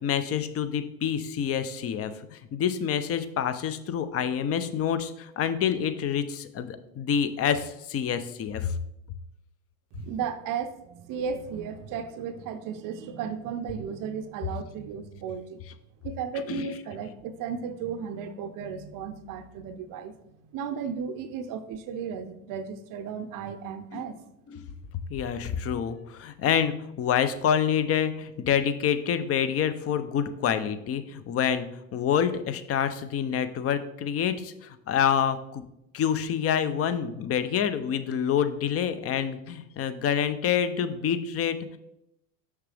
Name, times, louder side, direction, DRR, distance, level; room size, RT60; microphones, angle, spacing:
voice 1, 0.0-8.7 16.5-16.7 23.9-24.1 24.5-24.7 25.1-31.7 31.9-35.6 35.9-41.8, left 8 dB, 30° left, 11 dB, 0.7 m, -27 dB
voice 2, 10.0-15.6 16.0-20.1 20.5-24.2, right 6 dB, 45° right, 10 dB, 0.7 m, -34 dB
6.5 x 6.0 x 3.4 m, 0.83 s
hypercardioid pair, 90°, 46 cm